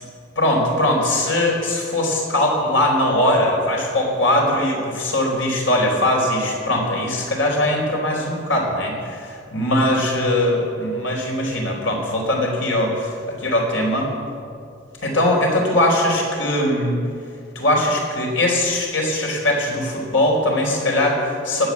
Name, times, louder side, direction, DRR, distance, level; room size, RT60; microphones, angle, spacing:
voice 1, 0.4-14.1 15.0-17.0 17.5-21.7, left 1 dB, 85° left, -1 dB, 4.5 m, -20 dB
19.5 x 8.7 x 8.5 m, 2.4 s
head